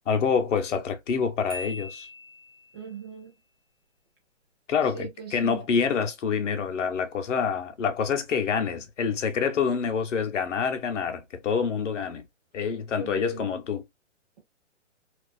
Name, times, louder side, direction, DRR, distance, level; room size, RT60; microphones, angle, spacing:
voice 1, 0.1-2.1 4.7-12.3 12.5-13.9, left 6 dB, 75° left, 0.7 m, -27 dB
Marimba xylophone, 1.5-2.9, left 2 dB, 85° right, 1.3 m, -41 dB
voice 2, 2.7-3.3 4.9-5.6 12.9-13.4, right 6 dB, 20° right, 0.6 m, -39 dB
2.5 x 2.3 x 2.2 m
hypercardioid pair, 155°, 37 cm